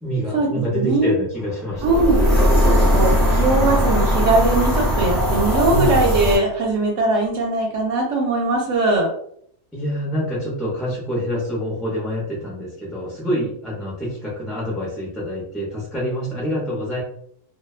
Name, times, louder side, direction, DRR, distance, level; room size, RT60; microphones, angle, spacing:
voice 1, 0.0-1.8 5.7-6.1 9.7-17.0, equal, ahead, -6 dB, 0.4 m, -26 dB
voice 2, 0.7-1.1 1.8-2.2 2.7-9.1, right 2 dB, 75° right, -1 dB, 0.9 m, -20 dB
sound 1, 1.8-6.4, equal, 30° right, 1.0 m, -18 dB
2.5 x 2.1 x 2.4 m, 0.65 s
omnidirectional pair, 1.3 m